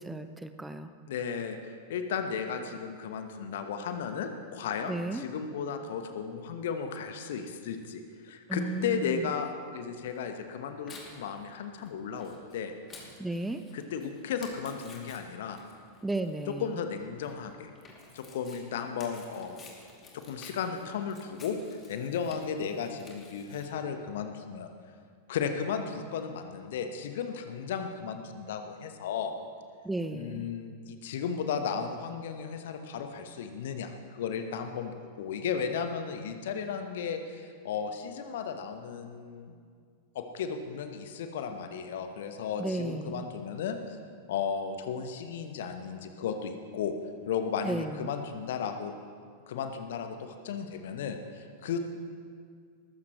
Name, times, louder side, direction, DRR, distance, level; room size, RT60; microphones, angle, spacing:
voice 1, 0.0-0.9 4.9-5.2 8.5-9.3 13.2-13.6 16.0-16.8 29.8-30.5 42.6-43.3 47.6-48.1, right 2 dB, 5° right, 9 dB, 0.6 m, -34 dB
voice 2, 1.1-12.7 13.7-15.6 16.6-17.7 18.1-19.6 20.1-24.7 25.3-29.3 30.1-34.9 35.2-39.6 40.1-44.0 44.3-46.9 47.3-48.9 49.5-51.8, left 6 dB, 55° left, 7 dB, 1.2 m, -35 dB
Tearing, 10.1-23.7, left 3 dB, 25° left, 2.8 m, -53 dB
20.5 x 14.5 x 3.2 m, 2.1 s
figure-of-eight pair, 90°, 0 cm